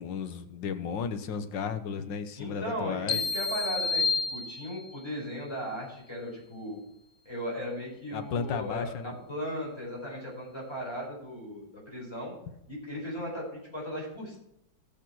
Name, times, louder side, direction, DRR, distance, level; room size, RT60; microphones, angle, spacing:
voice 1, 0.0-3.2 8.1-9.1, left 6 dB, 90° left, 10 dB, 1.7 m, -34 dB
voice 2, 2.4-6.8 7.2-12.3 12.7-14.4, equal, 15° left, -4 dB, 5.0 m, -37 dB
sound 1, 3.1-5.0, left 4 dB, 55° left, 0.5 m, -30 dB
15.5 x 6.6 x 6.0 m, 0.80 s
omnidirectional pair, 1.9 m